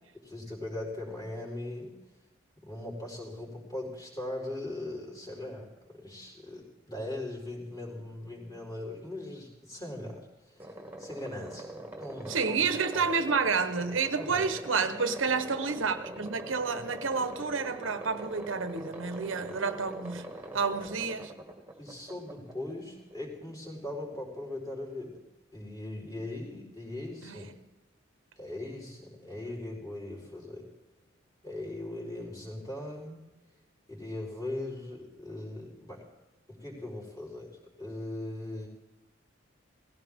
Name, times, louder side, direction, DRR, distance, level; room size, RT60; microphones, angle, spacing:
voice 1, 0.1-1.9 2.6-10.7 11.0-12.6 12.9-13.1 14.2-14.6 19.5-19.7 21.8-25.2 25.5-27.5 28.4-30.7 31.4-33.2 33.9-36.0 36.5-38.7, left 1 dB, 20° left, 4.4 m, -40 dB
sound 1, 10.6-23.2, right 1 dB, 10° right, 2.1 m, -43 dB
voice 2, 12.3-20.3 20.5-21.3 27.2-27.4, right 5 dB, 80° right, 1.1 m, -30 dB
18.5 x 16.5 x 3.6 m
head